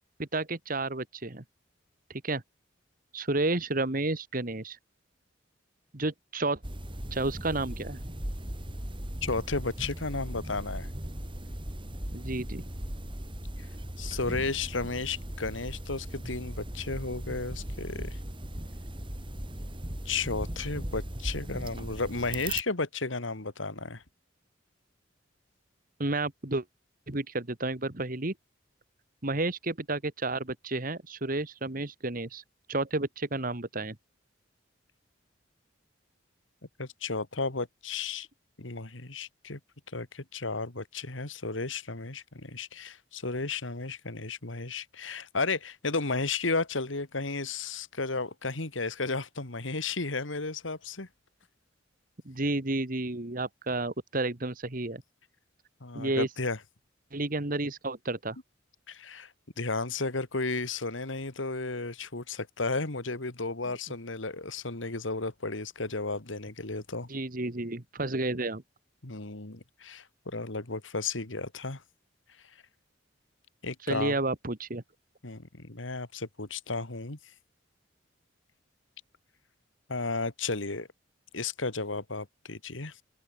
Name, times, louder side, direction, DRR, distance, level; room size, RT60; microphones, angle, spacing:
voice 1, 0.2-1.4 2.1-2.4 3.1-4.8 5.9-6.6 7.1-8.0 12.1-12.6 26.0-26.6 27.1-28.3 29.2-32.4 32.7-34.0 52.3-55.0 56.0-56.3 57.1-58.4 67.1-68.6 73.9-74.8, right 2 dB, 45° right, 1.7 m, -31 dB
sound 1, 6.6-22.6, right 1 dB, 25° right, 3.2 m, -38 dB
voice 2, 9.2-10.9 14.0-18.2 20.1-24.0 36.8-38.3 38.6-39.6 39.9-51.1 55.8-56.6 58.9-59.3 59.6-67.1 69.0-71.8 73.6-74.2 75.2-77.2 79.9-80.9 81.3-83.0, left 3 dB, 85° left, 2.4 m, -33 dB
open air
head